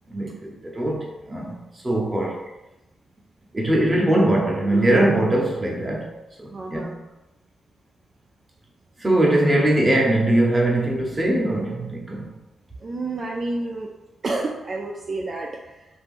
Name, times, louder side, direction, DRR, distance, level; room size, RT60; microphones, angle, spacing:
voice 1, 0.1-1.6 1.8-2.4 3.5-6.1 6.4-6.9 9.0-12.3, right 1 dB, 20° right, -1 dB, 0.8 m, -21 dB
voice 2, 6.5-7.0 12.8-13.9 14.2-15.9, right 2 dB, 45° right, -1 dB, 0.3 m, -30 dB
2.7 x 2.5 x 3.5 m, 1.0 s
cardioid pair, 90°, 0 cm